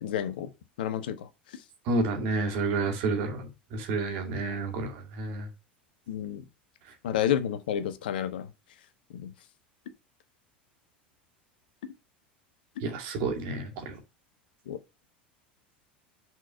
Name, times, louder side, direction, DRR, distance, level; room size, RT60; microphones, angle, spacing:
voice 1, 0.0-0.5 0.8-1.1 6.1-6.4 7.0-8.4 9.2-9.3 14.7-14.8, left 10 dB, 65° left, 0.9 m, -29 dB
voice 2, 1.9-5.5 12.8-14.0, right 3 dB, 50° right, 2.1 m, -30 dB
6.1 x 4.6 x 5.5 m
figure-of-eight pair, 75°, 5 cm